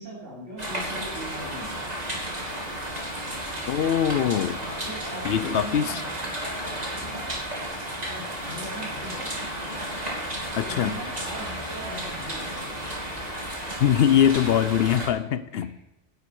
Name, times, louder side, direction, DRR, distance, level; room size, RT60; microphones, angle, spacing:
voice 1, 0.0-1.8 4.6-6.1 7.0-7.3 8.1-9.5 10.6-12.7 15.5-15.8, right 1 dB, 70° right, -6 dB, 3.8 m, -40 dB
sound 1, 0.6-15.1, right 1 dB, 30° right, 2.8 m, -33 dB
voice 2, 3.7-4.6 5.2-6.0 10.6-10.9 13.8-15.7, left 9 dB, 60° left, 14 dB, 0.7 m, -22 dB
11.5 x 9.6 x 4.6 m, 0.97 s
omnidirectional pair, 1.3 m